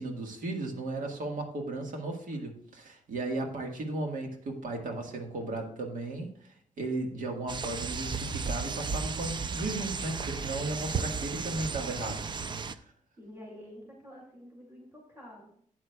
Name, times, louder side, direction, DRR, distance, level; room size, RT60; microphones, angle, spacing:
voice 1, 0.0-12.2 12.7-12.8, right 2 dB, 85° right, 3 dB, 1.6 m, -35 dB
sound 1, 7.5-12.7, right 5 dB, 35° right, 0.4 m, -34 dB
voice 2, 13.2-15.5, equal, 15° right, -3 dB, 2.7 m, -48 dB
12.5 x 8.7 x 2.3 m, 0.63 s
wide cardioid pair, 160°, 14 cm